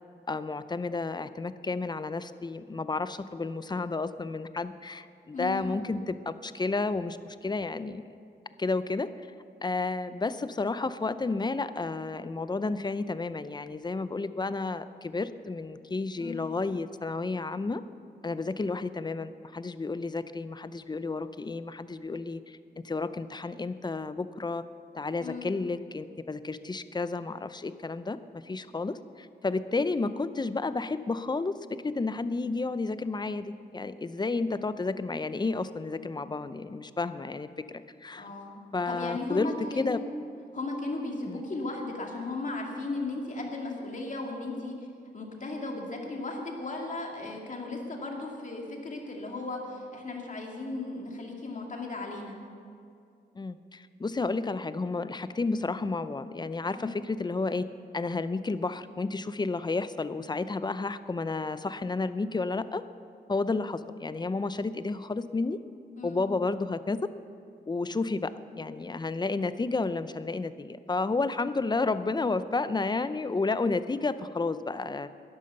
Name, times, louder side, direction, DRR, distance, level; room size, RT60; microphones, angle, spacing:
voice 1, 0.3-8.1 8.6-9.1 9.6-17.8 18.2-24.6 24.9-28.2 28.4-38.3 38.7-39.5 39.8-40.0 41.3-41.4 53.4-57.6 57.9-62.8 63.3-65.6 66.0-67.0 67.7-75.1, left 3 dB, 25° left, 13 dB, 0.6 m, -31 dB
voice 2, 5.3-5.7 16.2-16.4 25.2-25.5 38.1-40.1 40.5-44.9 45.1-52.4 56.7-56.9 66.0-66.2, left 2 dB, 45° left, 0 dB, 2.5 m, -36 dB
12.0 x 11.0 x 6.6 m, 2.4 s
cardioid pair, 85°, 19 cm